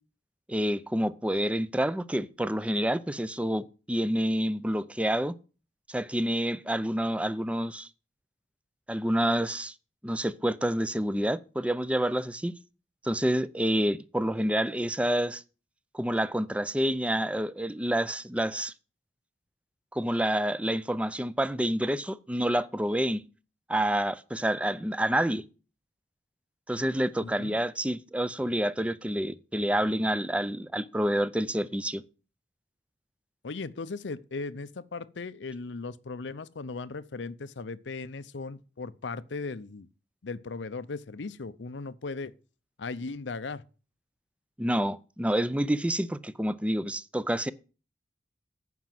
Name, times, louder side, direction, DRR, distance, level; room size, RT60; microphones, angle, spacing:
voice 1, 0.5-5.3 5.9-7.9 8.9-9.7 10.0-12.5 13.0-15.4 15.9-18.7 19.9-23.2 23.7-25.4 26.7-32.0 44.6-47.5, right 1 dB, 5° right, 0.4 m, -28 dB
voice 2, 27.2-27.6 33.4-39.9 40.2-42.3 42.8-43.6, left 3 dB, 90° left, 0.7 m, -37 dB
9.4 x 6.0 x 7.6 m
head